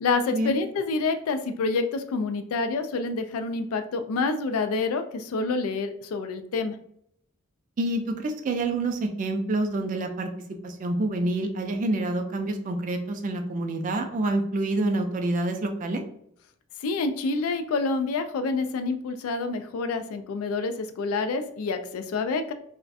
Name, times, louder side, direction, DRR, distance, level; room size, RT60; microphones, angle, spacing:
voice 1, 0.0-6.8 16.8-22.5, left 3 dB, 75° left, 8 dB, 0.3 m, -27 dB
voice 2, 7.8-10.3 10.6-16.0, right 2 dB, 35° right, 5 dB, 0.3 m, -27 dB
2.4 x 2.1 x 2.5 m, 0.70 s
head